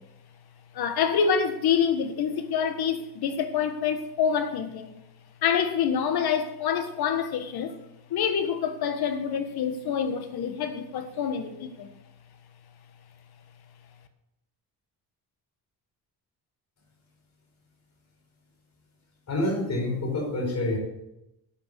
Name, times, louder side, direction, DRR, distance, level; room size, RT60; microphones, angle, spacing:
voice 1, 0.7-4.9 5.4-7.7 8.1-11.9, left 7 dB, 70° left, 1.5 m, -26 dB
voice 2, 19.3-20.8, left 1 dB, 45° left, 4.7 m, -27 dB
9.0 x 8.6 x 6.7 m
cardioid pair, 110°, 39 cm